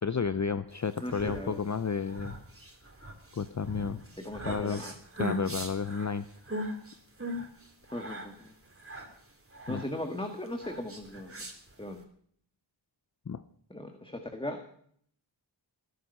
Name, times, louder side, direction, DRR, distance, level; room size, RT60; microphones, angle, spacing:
voice 1, 0.0-2.3 3.3-4.0 4.4-4.8 5.2-6.6 9.7-9.8 13.3-13.4, left 6 dB, 40° left, 13 dB, 0.6 m, -32 dB
sound 1, 0.8-12.0, right 1 dB, 30° right, 3.4 m, -40 dB
voice 2, 1.0-1.6 4.2-4.9 7.9-8.5 9.7-11.4 11.8-12.0 13.7-14.7, left 1 dB, 10° left, 5 dB, 1.8 m, -38 dB
20.0 x 11.5 x 5.5 m, 0.63 s
wide cardioid pair, 75°, 46 cm